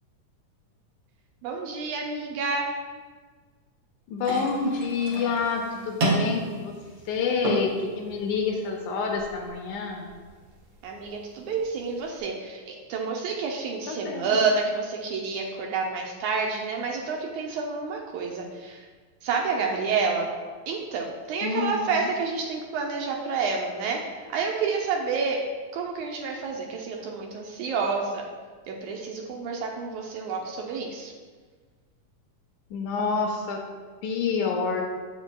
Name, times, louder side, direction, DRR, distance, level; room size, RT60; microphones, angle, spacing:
voice 1, 1.4-2.7 10.8-18.9 19.2-20.3 20.7-24.0 24.3-25.4 25.7-28.3 28.7-31.1, right 4 dB, 75° right, 0 dB, 1.8 m, -29 dB
voice 2, 4.1-6.7 7.1-10.1 13.9-14.4 21.4-22.1 32.7-33.6 34.0-34.8, left 5 dB, 80° left, 2 dB, 1.9 m, -28 dB
sound 1, 4.2-12.2, right 2 dB, 60° right, 1.7 m, -33 dB
7.3 x 7.0 x 2.2 m, 1.5 s
omnidirectional pair, 3.7 m